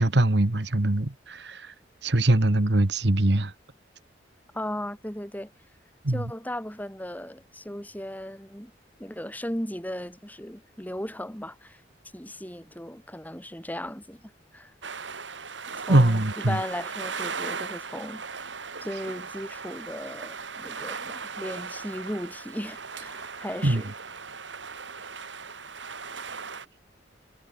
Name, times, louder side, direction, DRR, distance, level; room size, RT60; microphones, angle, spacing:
voice 1, 0.0-1.7 2.0-3.5 6.0-6.3 15.9-16.6 23.6-23.8, right 1 dB, 65° right, 1.5 m, -22 dB
voice 2, 4.5-5.5 6.1-8.7 9.0-11.8 12.1-14.2 14.5-14.7 15.9-18.5 18.8-23.9, left 1 dB, 10° left, 4.5 m, -36 dB
sound 1, 14.8-26.7, right 5 dB, 85° right, 3.5 m, -38 dB
head